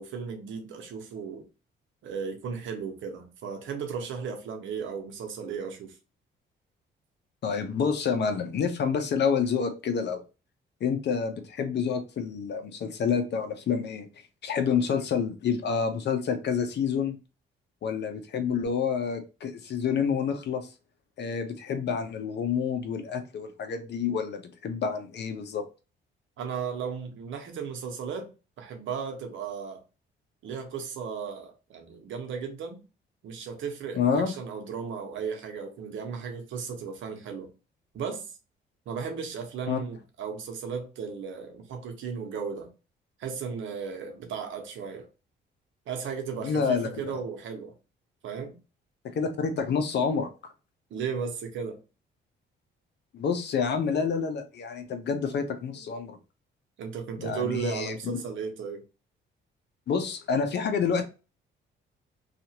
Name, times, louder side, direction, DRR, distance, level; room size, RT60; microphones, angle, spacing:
voice 1, 0.0-1.5 2.0-6.0 14.7-14.8 26.4-28.3 28.6-29.8 30.4-32.8 33.2-37.5 37.9-38.3 38.9-42.7 43.2-45.1 45.9-47.7 48.2-48.6 50.9-51.8 56.8-58.8, right 6 dB, 75° right, 0.8 m, -35 dB
voice 2, 7.4-10.2 10.8-14.1 14.4-17.2 17.8-20.7 21.2-25.6 33.9-34.3 39.7-39.8 46.4-47.2 49.1-50.3 53.1-56.2 57.2-58.0 59.9-61.0, left 6 dB, 60° left, 0.7 m, -28 dB
2.8 x 2.5 x 2.8 m
cardioid pair, 90°, 20 cm